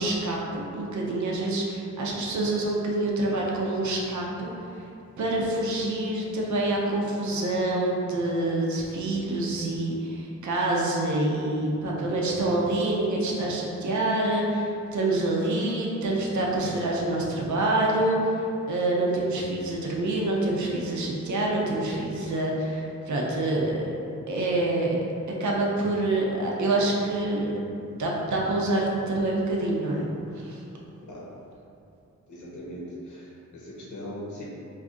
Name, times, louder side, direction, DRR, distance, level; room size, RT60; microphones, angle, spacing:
voice 1, 0.0-4.5 5.2-23.9 24.3-25.0 25.4-27.5 28.0-30.6, right 2 dB, 70° right, -3 dB, 0.6 m, -26 dB
voice 2, 32.3-34.4, equal, 75° left, -5 dB, 0.8 m, -39 dB
2.7 x 2.4 x 3.6 m, 2.7 s
wide cardioid pair, 90°, 30 cm